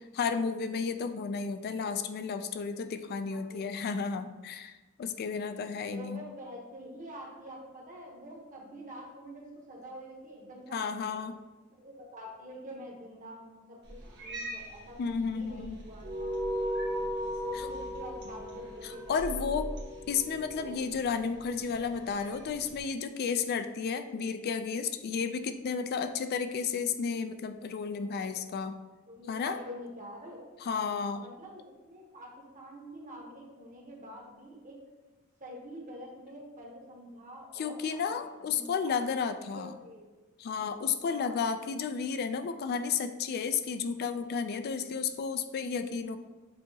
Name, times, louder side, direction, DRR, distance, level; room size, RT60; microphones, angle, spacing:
voice 1, 0.1-6.2 10.7-11.4 15.0-15.8 17.5-17.7 19.1-19.7 20.1-28.8 29.3-29.6 30.6-31.2 37.6-39.7 40.4-46.2, left 6 dB, 50° left, 10 dB, 0.3 m, -32 dB
voice 2, 3.3-3.9 5.3-11.2 11.7-16.4 17.4-19.4 28.0-28.6 29.1-30.8 31.2-34.8 35.4-38.0 38.4-40.0 41.0-41.4 46.0-46.2, equal, 40° right, -2 dB, 1.0 m, -47 dB
Cat, 13.8-22.8, right 1 dB, 55° right, 1.2 m, -45 dB
sound 1, 16.0-20.8, equal, 85° right, 0.6 m, -36 dB
6.8 x 2.8 x 2.8 m, 1.1 s
head